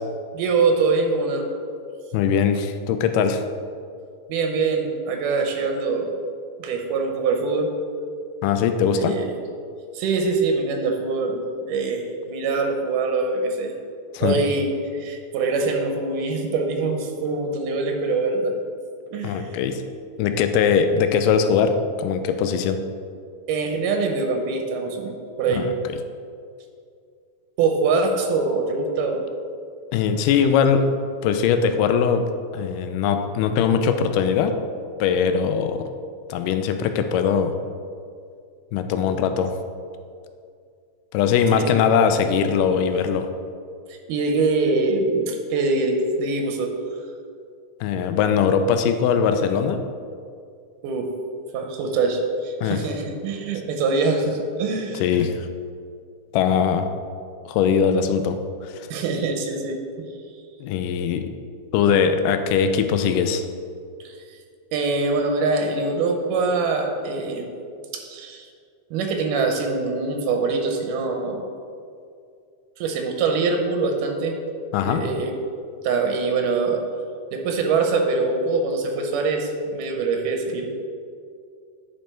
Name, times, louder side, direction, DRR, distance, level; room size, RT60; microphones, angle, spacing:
voice 1, 0.3-1.5 4.3-6.2 6.6-7.7 8.9-9.4 10.0-13.7 14.2-18.5 19.1-19.5 23.5-25.7 27.6-29.2 41.5-41.7 43.9-46.7 50.8-51.1 51.5-55.0 58.9-60.1 64.1-64.2 64.7-67.5 67.9-68.5 68.9-71.4 72.8-74.4 74.8-75.3 75.8-76.8 77.3-80.7, right 3 dB, 90° right, 4 dB, 2.4 m, -24 dB
voice 2, 2.1-3.4 8.4-9.2 14.1-14.4 19.2-19.8 20.2-22.8 25.6-25.7 29.9-30.9 31.2-32.3 32.5-34.6 35.0-35.9 36.3-37.5 38.7-39.5 41.1-43.3 47.8-49.8 52.6-52.8 55.0-55.5 56.3-56.9 57.5-58.4 58.6-58.8 60.6-61.3 61.7-63.4 74.7-75.0, left 7 dB, 90° left, 7 dB, 2.2 m, -21 dB
9.1 x 5.2 x 4.4 m, 2.3 s
omnidirectional pair, 3.7 m